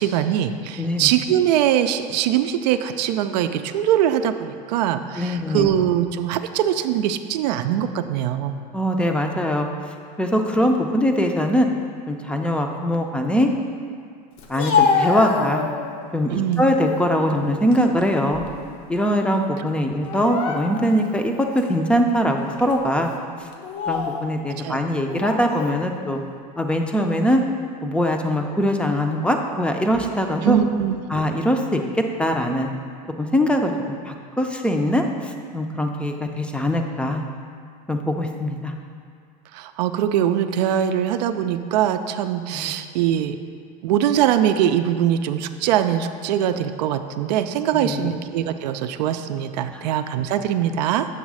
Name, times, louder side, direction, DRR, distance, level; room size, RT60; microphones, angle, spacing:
voice 1, 0.0-8.6 16.3-16.6 24.6-24.8 30.4-31.0 39.5-43.4 43.8-51.1, right 10 dB, 80° right, 9 dB, 0.4 m, -22 dB
voice 2, 0.8-1.1 5.2-5.7 8.7-9.7 10.2-11.7 12.1-13.5 14.5-15.6 16.1-18.4 18.9-23.1 23.4-23.5 23.9-26.2 26.6-27.4 27.8-30.6 31.1-32.7 33.2-37.2 37.9-38.8 42.5-42.7 47.7-48.1 49.7-49.9, equal, 5° left, 3 dB, 0.5 m, -22 dB
Speech, 14.4-16.0 16.5-17.1 17.5-18.8 19.0-19.2 20.0-21.0 21.6-21.7 22.5-22.7 23.5-24.2 25.1-25.8, left 5 dB, 60° left, 0.8 m, -25 dB
7.3 x 3.1 x 6.1 m, 2.2 s
supercardioid pair, 120°, 21 cm